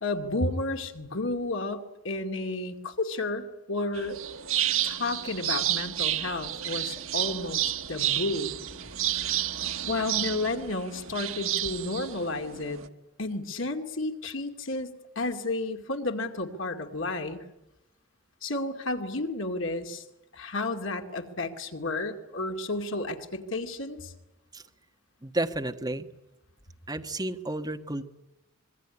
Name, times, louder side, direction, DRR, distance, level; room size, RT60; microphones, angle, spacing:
voice 1, 0.0-4.2 4.8-8.5 9.9-12.8 13.2-14.9 15.2-17.4 18.4-20.0 20.3-24.1, left 2 dB, 70° left, 5 dB, 2.4 m, -32 dB
sound 1, 3.9-12.9, right 12 dB, 85° right, 1.2 m, -31 dB
voice 2, 25.2-26.1 26.9-28.0, right 2 dB, 20° right, 5 dB, 1.4 m, -31 dB
25.5 x 22.5 x 9.9 m, 0.91 s
head